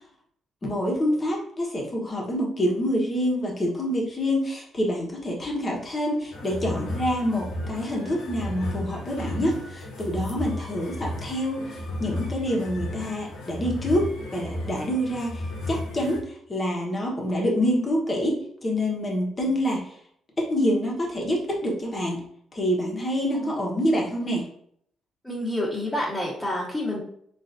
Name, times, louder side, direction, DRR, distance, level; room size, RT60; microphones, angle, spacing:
voice 1, 0.6-15.4 15.7-19.9 20.4-22.2 22.5-24.5, equal, 30° left, -1 dB, 1.0 m, -26 dB
sound 1, 6.3-16.2, left 1 dB, 85° left, 0.9 m, -34 dB
voice 2, 25.2-27.0, left 1 dB, 5° left, -10 dB, 1.3 m, -28 dB
3.7 x 2.5 x 2.5 m, 0.66 s
cardioid pair, 90°, 0 cm